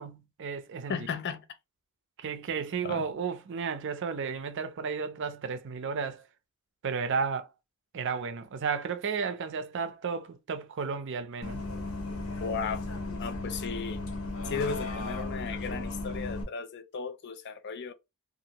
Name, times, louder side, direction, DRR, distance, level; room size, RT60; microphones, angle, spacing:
voice 1, 0.0-1.0 2.2-6.2 6.8-7.5 7.9-11.6, right 5 dB, 60° right, 0.5 m, -33 dB
voice 2, 0.9-1.4 2.8-3.1 12.4-12.8 13.1-14.0 14.4-17.9, left 5 dB, 55° left, 0.4 m, -35 dB
Bus, 11.4-16.4, left 2 dB, 90° left, 0.8 m, -35 dB
2.7 x 2.4 x 2.9 m
head